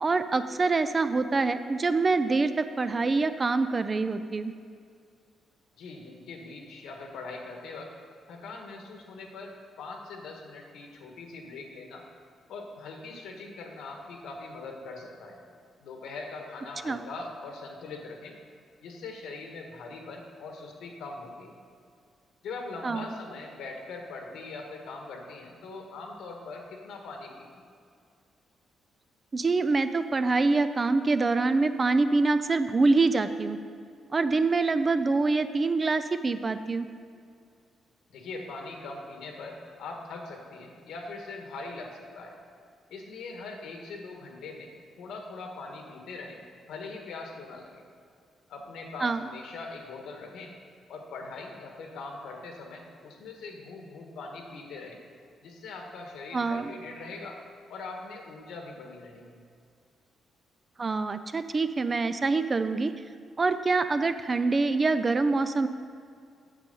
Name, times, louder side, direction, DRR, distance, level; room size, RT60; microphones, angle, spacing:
voice 1, 0.0-4.5 16.8-17.0 22.8-23.1 29.3-33.6 34.1-36.9 49.0-49.2 56.3-56.7 60.8-62.9 63.4-65.7, right 3 dB, 25° right, 11 dB, 0.3 m, -25 dB
voice 2, 5.8-7.9 8.3-12.0 12.5-15.4 15.8-18.4 18.8-21.5 22.4-27.7 38.1-42.4 42.9-46.4 46.7-47.7 48.5-50.5 50.9-55.0 55.4-57.4 57.7-59.4, left 3 dB, 90° left, 2 dB, 1.5 m, -41 dB
9.0 x 7.7 x 5.4 m, 2.3 s
cardioid pair, 165°, 0 cm